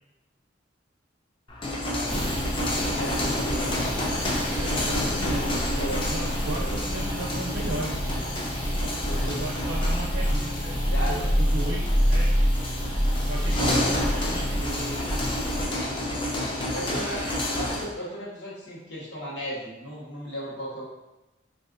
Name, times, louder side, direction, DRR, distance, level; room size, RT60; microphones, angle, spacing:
sound 1, 1.5-17.9, left 1 dB, 25° left, 0.4 m, -30 dB
voice 1, 1.9-4.0 5.8-6.0 6.6-6.8 9.0-9.5 10.9-11.3 16.7-20.8, equal, 65° left, -7 dB, 1.1 m, -36 dB
sound 2, 2.1-15.6, equal, 85° left, 1.2 m, -28 dB
voice 2, 4.5-8.3 9.1-12.4 13.3-15.2 16.7-17.4, right 2 dB, 80° right, -4 dB, 0.6 m, -36 dB
3.5 x 2.5 x 2.4 m, 0.98 s
head